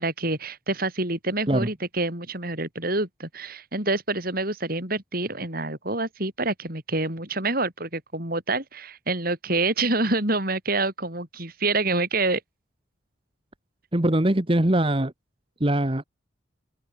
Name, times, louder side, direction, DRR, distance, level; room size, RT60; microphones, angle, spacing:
voice 1, 0.0-12.4, right 2 dB, 50° right, 7.6 m, -27 dB
voice 2, 13.9-15.1 15.6-16.0, right 1 dB, 30° right, 1.4 m, -22 dB
open air
head